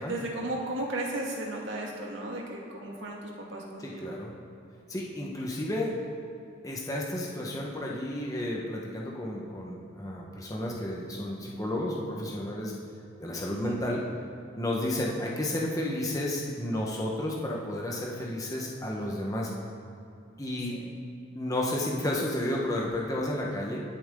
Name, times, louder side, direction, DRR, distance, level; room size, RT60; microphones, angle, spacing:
voice 1, 0.1-4.2 13.5-13.8 20.7-20.9, right 1 dB, 70° right, -1 dB, 2.0 m, -35 dB
voice 2, 3.8-4.3 4.9-5.9 6.6-12.7 13.2-14.0 14.6-19.5 20.4-20.7 21.3-23.8, left 1 dB, 15° left, -3 dB, 1.2 m, -32 dB
21.0 x 7.2 x 3.8 m, 2.6 s
head